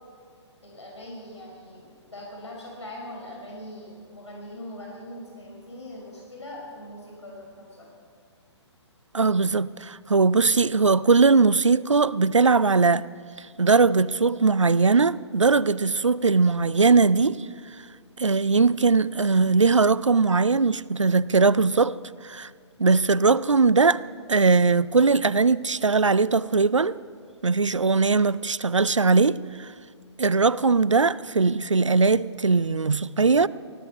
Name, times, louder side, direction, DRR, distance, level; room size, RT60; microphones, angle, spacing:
voice 1, 0.6-7.9, left 1 dB, 75° left, 4.7 m, -41 dB
voice 2, 9.1-13.0 13.6-17.5 18.2-22.0 22.2-22.5 22.8-24.0 24.3-27.0 27.4-29.7 30.2-33.5, right 4 dB, 85° right, 0.5 m, -20 dB
19.0 x 14.0 x 5.3 m
figure-of-eight pair, 130°, 15 cm